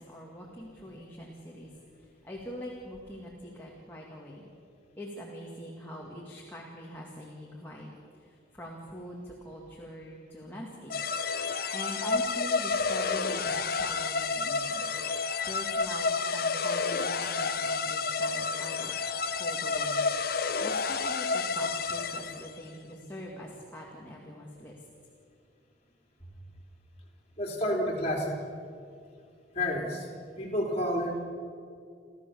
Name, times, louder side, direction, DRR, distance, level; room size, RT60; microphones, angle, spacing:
voice 1, 0.0-1.7 2.0-4.5 5.0-7.9 8.2-11.1 11.4-15.0 15.4-19.0 19.3-20.0 20.6-24.7 26.2-26.3, equal, 10° left, -3 dB, 2.2 m, -43 dB
sound 1, 10.9-22.6, left 4 dB, 55° left, 0.8 m, -30 dB
voice 2, 27.4-28.3 29.5-30.1 30.4-31.2, equal, 35° left, -1 dB, 3.4 m, -30 dB
29.5 x 13.0 x 7.0 m, 2.4 s
head